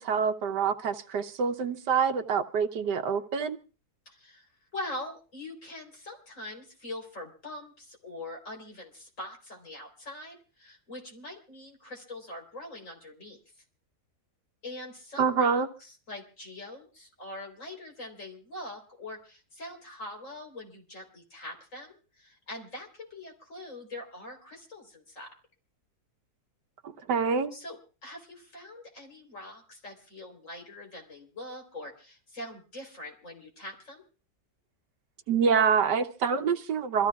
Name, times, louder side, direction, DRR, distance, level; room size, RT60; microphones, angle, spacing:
voice 1, 0.0-3.6 15.2-15.7 26.8-27.5 35.3-37.1, right 6 dB, 80° right, 6 dB, 1.6 m, -26 dB
voice 2, 4.1-13.4 14.6-25.3 27.5-34.0, left 1 dB, 50° left, 2 dB, 4.5 m, -43 dB
27.0 x 15.0 x 2.4 m, 0.36 s
omnidirectional pair, 1.8 m